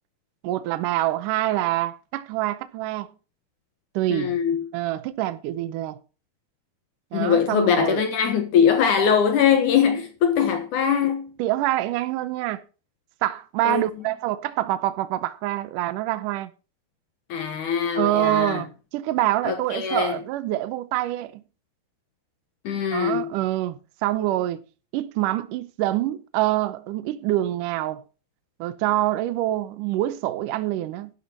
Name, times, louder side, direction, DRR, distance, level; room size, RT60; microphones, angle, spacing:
voice 1, 0.4-3.1 3.9-4.4 4.7-6.0 7.1-8.0 11.4-12.6 13.2-16.5 18.0-21.4 22.9-24.6 24.9-28.0 28.6-31.1, right 15 dB, 75° right, 2.0 m, -26 dB
voice 2, 4.1-4.7 7.1-11.3 13.6-13.8 17.3-18.6 19.4-20.1 22.7-23.3, left 7 dB, 65° left, 2.2 m, -22 dB
12.5 x 12.0 x 2.9 m
omnidirectional pair, 4.6 m